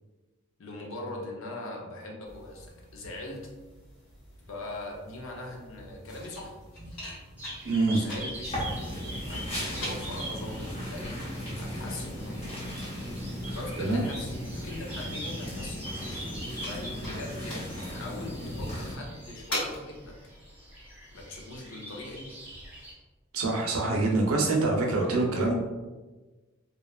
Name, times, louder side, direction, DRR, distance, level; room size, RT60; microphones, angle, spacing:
voice 1, 0.6-3.5 4.5-6.6 7.8-8.7 9.2-11.2 11.6-12.7 13.5-15.8 16.7-20.2 21.1-22.3, left 2 dB, 60° left, 0 dB, 0.5 m, -41 dB
sound 1, 2.2-19.8, equal, 90° left, 1.3 m, -44 dB
sound 2, 7.4-22.9, right 1 dB, 5° right, 0.5 m, -44 dB
voice 2, 7.6-8.0 13.8-14.0 23.3-25.5, right 2 dB, 80° right, -1 dB, 0.6 m, -25 dB
sound 3, 8.5-19.0, equal, 30° left, 0.7 m, -36 dB
2.8 x 2.2 x 2.3 m, 1.2 s
head